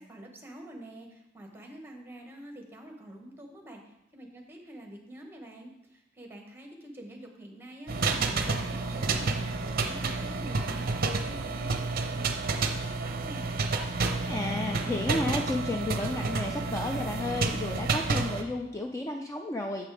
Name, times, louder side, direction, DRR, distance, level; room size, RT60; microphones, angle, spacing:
voice 1, 0.0-3.8 4.1-9.4 9.7-10.8 11.3-11.8 12.1-13.5, right 1 dB, 10° right, 2 dB, 1.1 m, -47 dB
sound 1, 7.9-18.4, right 3 dB, 50° right, 0.6 m, -30 dB
voice 2, 14.3-19.9, left 2 dB, 15° left, 2 dB, 0.4 m, -32 dB
7.5 x 5.2 x 4.8 m, 0.93 s
head